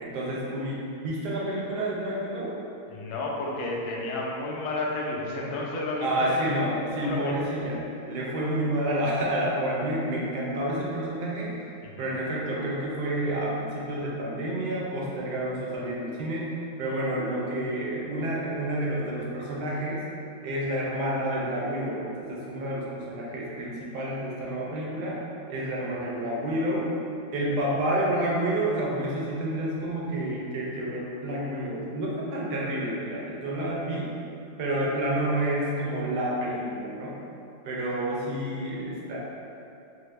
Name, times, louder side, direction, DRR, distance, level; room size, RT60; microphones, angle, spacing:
voice 1, 0.0-2.6 6.0-11.6 12.0-20.0 20.4-25.2 25.5-26.9 27.3-34.1 34.6-37.2 37.6-39.2, right 1 dB, 70° right, -5 dB, 1.1 m, -29 dB
voice 2, 2.9-6.7 7.0-7.3 11.8-12.1 27.6-27.7, left 2 dB, 90° left, -2 dB, 1.4 m, -32 dB
4.1 x 2.1 x 3.1 m, 2.7 s
omnidirectional pair, 2.2 m